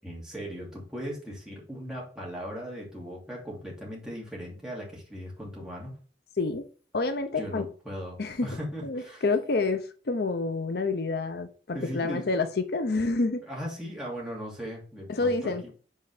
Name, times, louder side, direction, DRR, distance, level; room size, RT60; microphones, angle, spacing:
voice 1, 0.0-5.9 7.3-9.2 11.7-12.4 13.5-15.7, equal, 5° right, -4 dB, 2.8 m, -38 dB
voice 2, 6.9-7.7 8.2-8.5 8.8-13.4 15.1-15.7, left 3 dB, 60° left, 9 dB, 0.7 m, -28 dB
5.5 x 4.6 x 4.9 m, 0.40 s
head